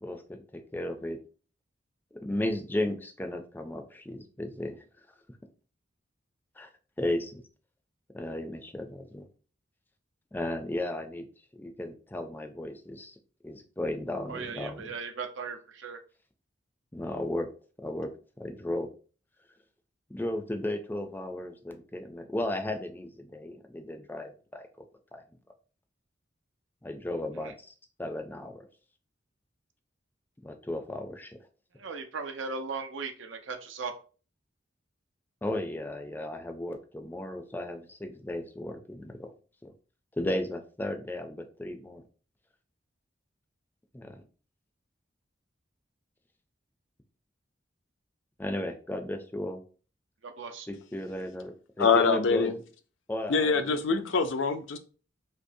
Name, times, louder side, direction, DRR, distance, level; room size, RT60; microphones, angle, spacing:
voice 1, 0.0-1.2 2.2-4.8 6.6-6.7 7.0-7.4 8.1-9.3 10.3-11.3 11.5-13.2 13.4-14.9 16.9-17.5 17.8-18.1 18.4-18.9 20.1-24.9 25.1-25.2 26.8-27.7 28.0-28.7 30.4-31.4 35.4-39.3 39.6-39.7 40.2-42.0 43.9-44.2 48.4-49.6 50.7-52.5 53.1-54.0, left 1 dB, 10° left, 0.4 m, -35 dB
voice 2, 14.3-16.0 27.4-27.5 31.8-33.9 50.2-50.7, right 4 dB, 85° right, 0.6 m, -37 dB
voice 3, 51.8-52.5 53.3-54.8, left 5 dB, 80° left, 0.5 m, -24 dB
5.1 x 2.0 x 2.6 m
head